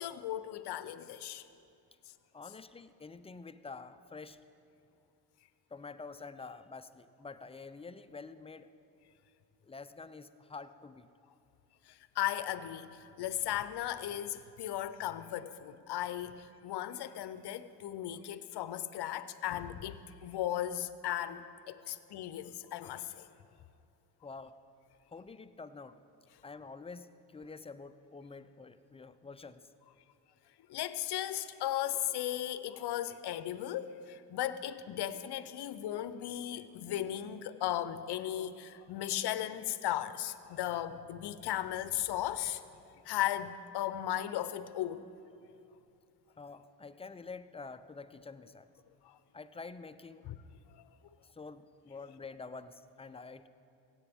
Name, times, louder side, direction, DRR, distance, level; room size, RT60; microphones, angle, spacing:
voice 1, 0.0-1.4 11.9-12.9 13.2-23.3 30.7-42.6 43.0-45.0 49.0-49.2 50.3-50.4 50.7-50.9, left 12 dB, 55° left, 13 dB, 0.7 m, -36 dB
voice 2, 2.3-4.4 5.7-8.7 9.6-11.1 21.8-21.9 24.2-24.6 25.1-26.0 26.4-29.7 46.4-48.7 49.3-50.2 51.2-53.5, left 4 dB, 15° left, 12 dB, 0.4 m, -48 dB
16.5 x 8.2 x 3.6 m, 2.6 s
supercardioid pair, 55°, 47 cm